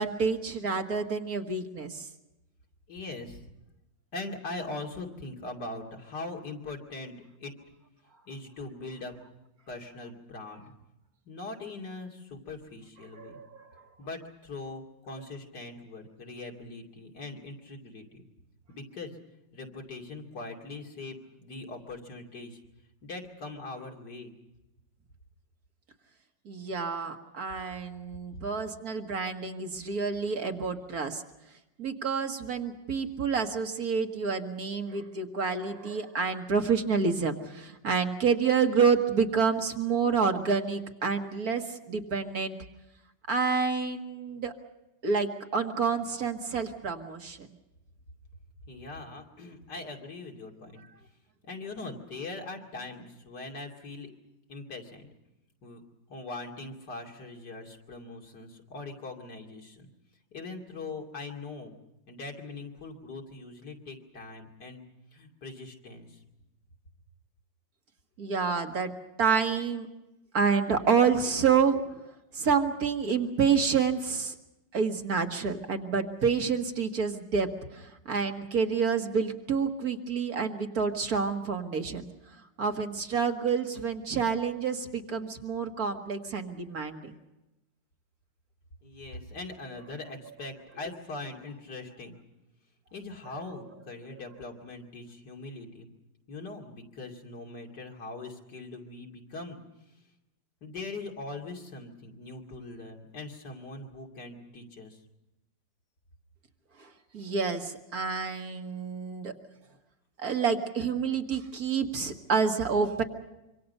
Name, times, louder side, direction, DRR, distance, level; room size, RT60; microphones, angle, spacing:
voice 1, 0.0-2.1 13.2-13.7 26.5-31.2 31.8-42.6 43.3-44.5 45.0-47.5 68.2-69.9 70.3-72.0 72.3-74.3 74.7-82.1 82.6-87.1 106.8-109.3 110.2-113.0, right 5 dB, 55° right, 4 dB, 2.2 m, -28 dB
voice 2, 2.9-3.5 4.1-7.5 8.3-9.1 9.7-10.7 11.2-13.4 14.0-18.2 18.7-19.2 19.5-22.6 23.0-24.3 48.6-50.8 51.5-54.1 54.5-55.1 55.6-55.8 56.1-59.9 60.3-61.7 62.1-64.8 65.1-66.2 88.8-92.2 92.9-95.9 96.3-99.6 100.6-105.0, left 3 dB, 65° left, 1 dB, 3.2 m, -41 dB
26.0 x 25.0 x 5.5 m, 0.93 s
omnidirectional pair, 1.9 m